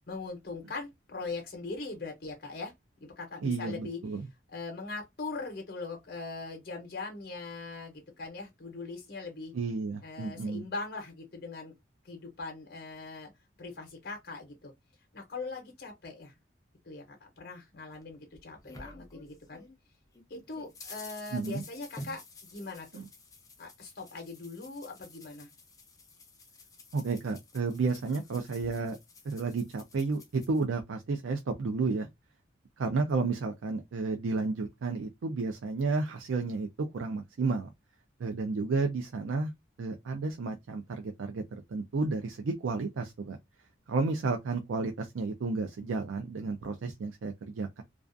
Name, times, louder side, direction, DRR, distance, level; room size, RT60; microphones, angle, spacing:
voice 1, 0.1-2.7 3.0-4.0 4.5-9.5 10.0-11.7 12.0-13.3 13.6-14.7 15.1-16.3 16.8-19.6 20.3-22.2 22.5-23.0 23.6-25.5, left 3 dB, 50° left, 0.8 m, -41 dB
voice 2, 3.4-4.3 9.5-10.6 21.3-21.6 22.9-23.1 26.9-29.0 29.2-32.1 32.8-36.7 36.9-37.7 38.2-39.5 39.8-43.4 43.9-47.8, right 4 dB, 85° right, 0.4 m, -32 dB
sound 1, 17.9-19.8 20.1-30.6, left 2 dB, 20° left, 0.4 m, -51 dB
2.3 x 2.3 x 2.4 m
head